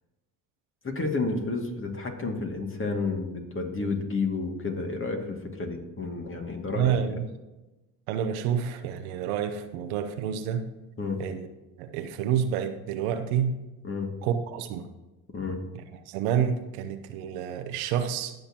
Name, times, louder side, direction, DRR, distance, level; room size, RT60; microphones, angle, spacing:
voice 1, 0.8-7.0 11.0-11.2 13.8-14.1 15.3-15.6, left 3 dB, 30° left, 3 dB, 2.3 m, -31 dB
voice 2, 6.7-7.3 8.1-10.6 11.2-11.5 11.8-13.5 14.2-14.9 16.1-18.3, right 8 dB, 85° right, 8 dB, 1.0 m, -28 dB
18.5 x 6.6 x 2.9 m, 1.1 s
hypercardioid pair, 65°, 42 cm